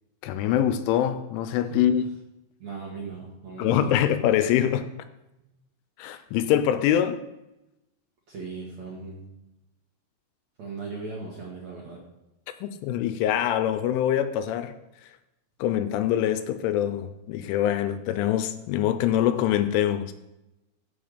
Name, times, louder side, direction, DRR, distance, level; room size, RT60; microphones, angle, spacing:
voice 1, 0.2-2.0 3.6-4.9 6.0-7.2 12.6-14.7 15.6-20.1, left 11 dB, 80° left, 3.0 m, -24 dB
voice 2, 2.6-4.0 8.3-9.2 10.6-12.0, right 4 dB, 55° right, 2.0 m, -38 dB
14.5 x 5.6 x 5.1 m
omnidirectional pair, 5.7 m